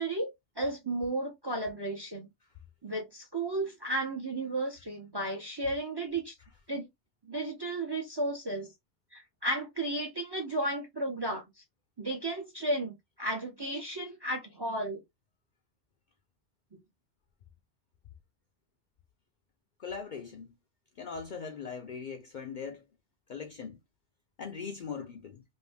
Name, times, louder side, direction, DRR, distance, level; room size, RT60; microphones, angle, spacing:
voice 1, 0.0-2.3 2.8-6.3 6.7-6.9 7.3-8.7 9.1-11.4 12.0-15.0 16.7-16.8, right 1 dB, 30° right, 0.5 m, -33 dB
voice 2, 19.8-20.5 21.0-22.8 23.3-23.8 24.4-25.4, left 6 dB, 60° left, 0.5 m, -40 dB
2.6 x 2.6 x 3.3 m
omnidirectional pair, 1.2 m